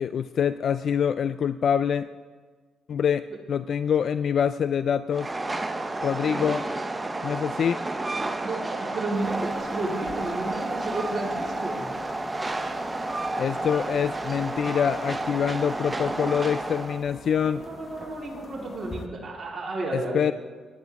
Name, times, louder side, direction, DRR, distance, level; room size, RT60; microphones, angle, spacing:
voice 1, 0.0-2.1 2.9-5.3 6.0-6.6 7.2-7.8 13.4-17.6 19.9-20.3, left 8 dB, 55° left, 13 dB, 0.3 m, -25 dB
Train, 5.1-17.0, right 2 dB, 20° right, 0.9 m, -31 dB
voice 2, 8.4-11.8 17.5-20.2, right 2 dB, 35° right, -4 dB, 3.8 m, -32 dB
sound 1, 9.1-19.1, left 3 dB, 30° left, 0.9 m, -45 dB
18.5 x 10.5 x 3.6 m, 1.5 s
cardioid pair, 90°, 0 cm